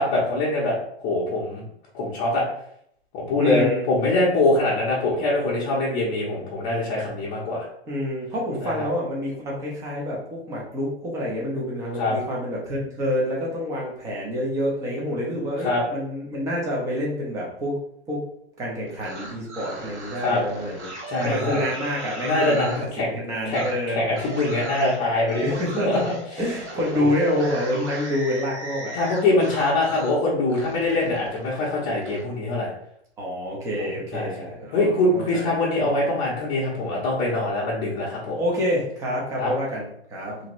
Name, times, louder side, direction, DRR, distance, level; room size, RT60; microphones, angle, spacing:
voice 1, 0.0-1.6 1.9-2.4 3.1-7.6 8.6-8.8 12.0-12.2 15.6-15.8 20.2-20.4 21.1-21.6 22.2-23.1 23.4-25.4 25.9-26.1 28.9-32.7 33.8-38.4 39.4-39.5, left 2 dB, 25° left, -7 dB, 0.7 m, -23 dB
voice 2, 3.4-3.9 7.9-17.8 18.1-18.2 18.6-20.9 21.2-22.6 23.0-24.0 25.4-26.0 26.4-29.0 33.2-35.6 38.3-40.4, equal, 10° right, -4 dB, 0.5 m, -27 dB
sound 1, 18.9-22.9 23.5-23.7 24.1-30.2 30.5-32.2, right 2 dB, 90° right, 1.1 m, -37 dB
2.8 x 2.6 x 2.9 m, 0.70 s
hypercardioid pair, 145°, 33 cm